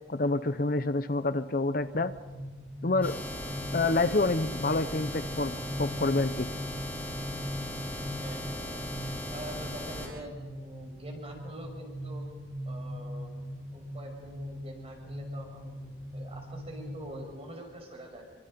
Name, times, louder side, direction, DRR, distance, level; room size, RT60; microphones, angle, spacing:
voice 1, 0.1-2.1 2.8-3.1 3.7-6.5, left 2 dB, 45° left, 12 dB, 0.7 m, -28 dB
sound 1, 1.8-17.3, equal, 50° right, 4.0 m, -41 dB
sound 2, 3.0-10.1, left 1 dB, 10° left, 4.9 m, -38 dB
voice 2, 8.2-8.9 9.3-12.2 12.7-13.3 13.7-15.8 16.1-18.3, right 1 dB, 30° right, 3 dB, 6.0 m, -45 dB
28.0 x 25.0 x 5.2 m, 1.3 s
head